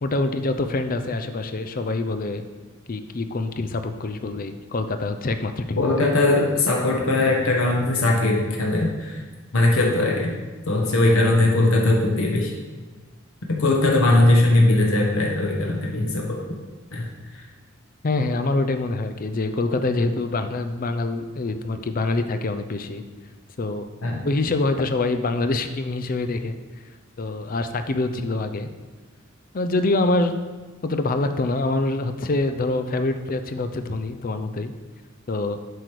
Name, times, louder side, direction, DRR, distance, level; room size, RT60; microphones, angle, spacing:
voice 1, 0.0-2.4 2.9-5.9 18.0-23.0 23.6-23.9 24.2-26.6 27.2-28.7 29.5-30.4 30.8-34.7 35.3-35.6, left 2 dB, 45° left, 8 dB, 0.5 m, -25 dB
voice 2, 5.8-9.2 9.5-10.3 10.7-12.5 13.5-16.4 16.9-17.1 17.3-17.5 24.0-24.2, left 2 dB, 80° left, -1 dB, 1.1 m, -20 dB
7.8 x 4.9 x 4.6 m, 1.3 s
head